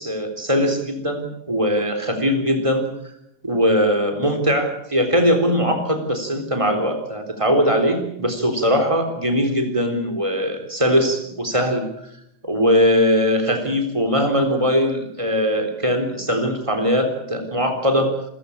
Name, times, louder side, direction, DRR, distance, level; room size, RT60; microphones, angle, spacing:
voice 1, 0.0-2.9 3.4-11.8 12.4-18.1, equal, 10° right, 5 dB, 3.4 m, -20 dB
28.5 x 15.0 x 8.6 m, 0.80 s
omnidirectional pair, 3.4 m